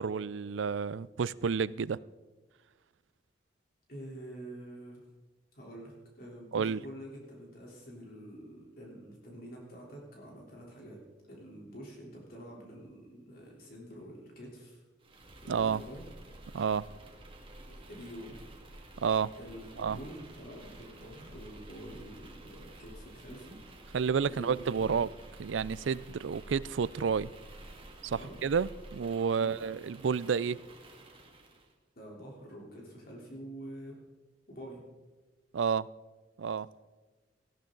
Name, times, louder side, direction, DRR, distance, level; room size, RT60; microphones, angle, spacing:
voice 1, 0.0-2.0 6.5-6.8 15.5-15.8 16.5-16.9 19.0-19.3 19.8-20.0 23.9-25.1 25.4-27.3 28.0-30.6 35.5-35.9 36.4-36.7, right 6 dB, 90° right, 0.4 m, -30 dB
voice 2, 3.9-5.0 5.5-11.0 11.3-14.8 15.4-16.0 17.7-18.4 19.4-23.6 24.2-25.0 28.1-28.4 29.4-29.6 32.0-34.0 34.5-34.8, right 1 dB, 55° left, 3.6 m, -47 dB
sound 1, 15.0-31.7, right 1 dB, 30° right, 2.0 m, -50 dB
18.5 x 14.5 x 3.9 m
head